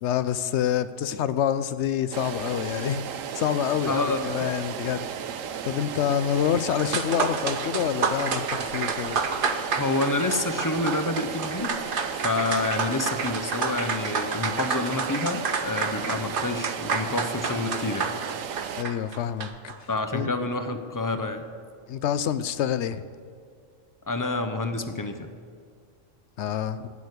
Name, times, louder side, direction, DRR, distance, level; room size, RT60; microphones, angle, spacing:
voice 1, 0.0-5.1 5.6-9.2 18.8-19.5 20.1-20.3 21.9-23.0 26.4-26.9, left 9 dB, 65° left, 14 dB, 0.8 m, -27 dB
sound 1, 2.1-18.8, right 8 dB, 80° right, 1.0 m, -35 dB
voice 2, 3.9-4.3 9.7-11.8 12.1-18.1 19.9-21.5 24.1-25.3, left 2 dB, 25° left, 8 dB, 0.4 m, -28 dB
sound 2, 6.8-19.8, right 5 dB, 45° right, 0.9 m, -30 dB
11.0 x 9.4 x 8.1 m, 2.2 s
omnidirectional pair, 1.4 m